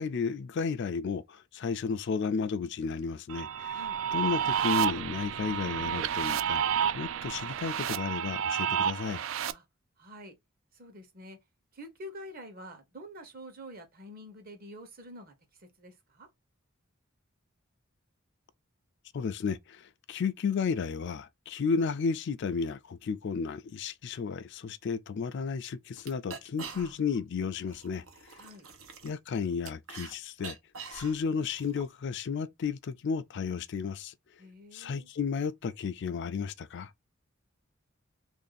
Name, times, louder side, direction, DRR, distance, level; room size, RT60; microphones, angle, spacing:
voice 1, 0.0-3.8 4.1-6.7 6.9-9.2 19.1-28.0 28.3-28.4 29.0-30.6 30.9-34.1 34.7-36.9, left 5 dB, 60° left, 0.4 m, -33 dB
sound 1, 3.3-9.5, right 9 dB, 70° right, 0.4 m, -30 dB
voice 2, 10.0-10.3 10.7-11.4 11.7-15.3 15.8-16.3 28.4-28.7 34.4-35.1, equal, 45° right, 1.0 m, -47 dB
sound 2, 25.2-25.3 25.6-25.7 26.0-27.2 27.5-30.1 30.4-31.9, right 5 dB, 85° right, 0.9 m, -45 dB
3.1 x 2.6 x 3.9 m
head